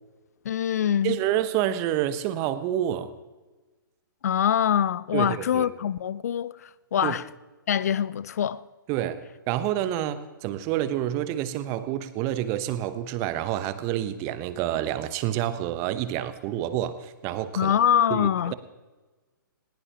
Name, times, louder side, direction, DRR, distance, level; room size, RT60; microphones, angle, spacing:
voice 1, 0.5-1.2 4.2-7.2 7.7-8.6 17.6-18.5, left 9 dB, 45° left, 0.5 m, -24 dB
voice 2, 1.0-3.1 5.1-5.7 7.0-7.2 8.9-17.8 18.1-18.5, right 12 dB, 25° right, 0.9 m, -28 dB
20.0 x 19.5 x 3.0 m
figure-of-eight pair, 125°, 11 cm